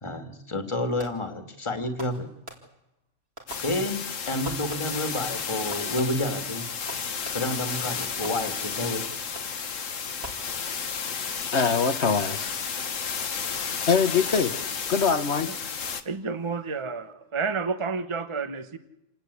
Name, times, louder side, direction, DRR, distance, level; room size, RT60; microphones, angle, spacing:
voice 1, 0.0-2.3 3.6-6.7 7.3-9.0, left 1 dB, 25° left, 7 dB, 2.2 m, -30 dB
Fireworks, 1.0-1.4 2.0-3.0 3.4-4.1 4.4-5.1 5.7-7.7 8.2-8.9 9.3-9.7 10.2-11.0, right 1 dB, 55° right, 4.4 m, -44 dB
sound 1, 3.5-16.0, left 6 dB, 80° left, 1.7 m, -32 dB
voice 2, 11.5-12.8 13.9-14.6 14.9-15.5, left 5 dB, 60° left, 8 dB, 1.4 m, -23 dB
voice 3, 16.0-18.8, right 4 dB, 25° right, 10 dB, 1.2 m, -30 dB
28.0 x 19.0 x 8.4 m, 0.85 s
omnidirectional pair, 1.3 m